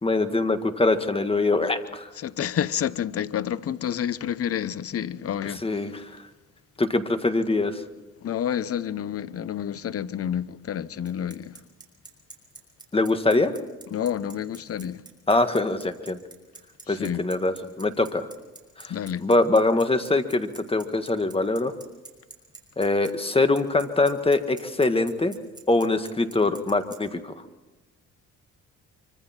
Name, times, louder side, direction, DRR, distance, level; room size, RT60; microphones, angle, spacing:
voice 1, 0.0-2.1 5.6-6.2 6.8-7.8 12.9-13.6 15.3-16.2 16.9-18.3 18.8-18.9 19.2-21.7 22.8-25.3 25.7-27.3, left 2 dB, 20° left, 1.7 m, -23 dB
voice 2, 2.2-5.8 8.2-11.6 13.9-15.0 16.9-17.2 18.9-19.3, left 9 dB, 50° left, 0.9 m, -29 dB
Bicycle, 11.1-27.0, right 3 dB, 15° right, 5.8 m, -46 dB
25.0 x 25.0 x 4.4 m
cardioid pair, 90°, 30 cm